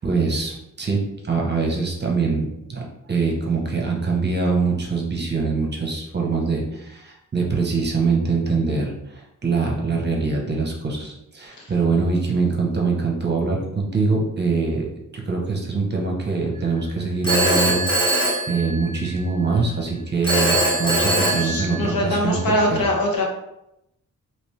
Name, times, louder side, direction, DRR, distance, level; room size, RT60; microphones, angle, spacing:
voice 1, 0.0-14.9 15.1-22.8, right 4 dB, 30° right, -1 dB, 0.7 m, -23 dB
Telephone, 17.2-19.2 20.2-22.2, right 1 dB, 15° left, 0.9 m, -22 dB
voice 2, 21.2-23.2, left 1 dB, 85° left, -1 dB, 0.9 m, -23 dB
3.1 x 2.9 x 3.1 m, 0.83 s
wide cardioid pair, 115°, 33 cm